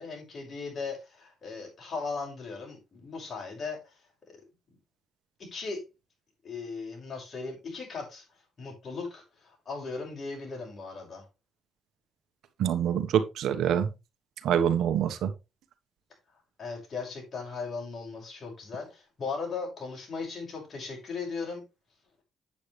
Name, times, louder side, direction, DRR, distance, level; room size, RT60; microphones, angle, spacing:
voice 1, 0.0-4.0 5.4-5.8 6.4-8.2 8.6-11.2 16.6-21.6, left 4 dB, 45° left, 5.8 m, -37 dB
voice 2, 12.6-13.9 14.4-15.3, right 9 dB, 80° right, 1.2 m, -25 dB
8.6 x 8.4 x 3.3 m
cardioid pair, 90°, 0 cm